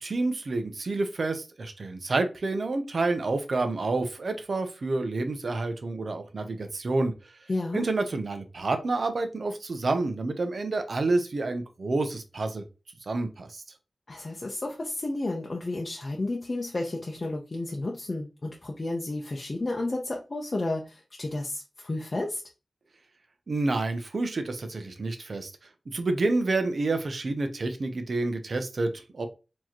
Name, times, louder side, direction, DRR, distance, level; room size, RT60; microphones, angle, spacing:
voice 1, 0.0-7.1 7.7-12.6 13.1-13.6 23.5-25.5 25.9-29.3, right 3 dB, 60° right, 7 dB, 0.7 m, -28 dB
voice 2, 7.5-7.8 14.1-22.4, left 2 dB, 40° left, -1 dB, 0.7 m, -32 dB
4.5 x 2.9 x 2.9 m, 0.30 s
wide cardioid pair, 90°, 0 cm